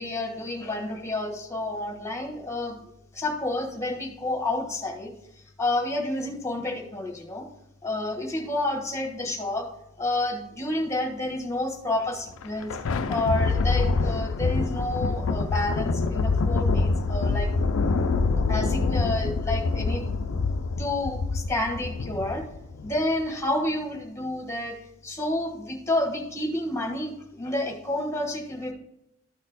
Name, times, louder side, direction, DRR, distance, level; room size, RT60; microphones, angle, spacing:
voice 1, 0.0-2.8 3.1-5.1 5.6-7.5 7.8-9.7 10.0-12.8 13.1-17.5 18.5-20.0 20.8-22.5 22.8-24.8 25.0-28.7, left 1 dB, 15° left, 2 dB, 1.3 m, -29 dB
Thunder, 12.3-23.0, left 3 dB, 65° left, 0.4 m, -25 dB
12.5 x 4.3 x 4.0 m, 0.81 s
head